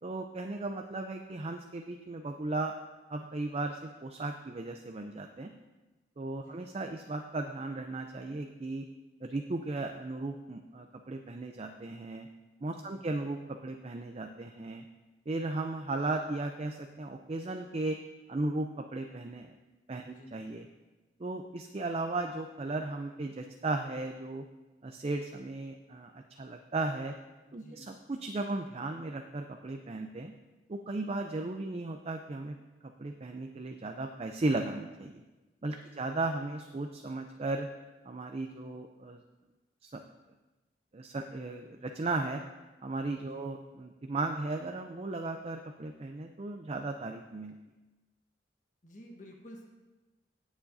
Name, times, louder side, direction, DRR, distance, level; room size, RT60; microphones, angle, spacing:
voice 1, 0.0-2.7 3.1-5.5 6.2-8.9 9.2-12.3 12.6-14.8 15.3-18.0 18.3-19.5 19.9-20.7 21.2-24.4 24.8-27.1 27.5-30.3 30.7-32.6 33.0-35.2 35.6-37.7 38.1-39.2 39.8-40.0 40.9-42.4 42.8-47.5, right 2 dB, 35° right, 5 dB, 0.4 m, -36 dB
voice 2, 6.3-6.7 12.7-13.1 20.0-20.5 27.5-27.9 35.7-36.1 43.3-43.6 48.8-49.7, equal, 45° left, 0 dB, 1.3 m, -53 dB
17.0 x 7.2 x 2.6 m, 1.1 s
head